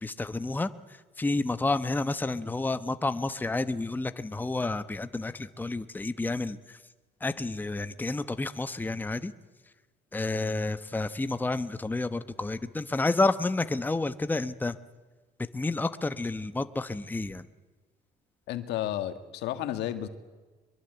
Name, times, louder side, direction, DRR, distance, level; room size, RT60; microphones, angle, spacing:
voice 1, 0.0-0.7 1.2-6.8 7.2-9.3 10.1-14.8 15.5-17.5, left 2 dB, 10° left, 11 dB, 1.0 m, -30 dB
voice 2, 18.5-20.1, left 12 dB, 85° left, 9 dB, 2.0 m, -32 dB
23.0 x 22.5 x 8.0 m, 1.3 s
cardioid pair, 110°, 17 cm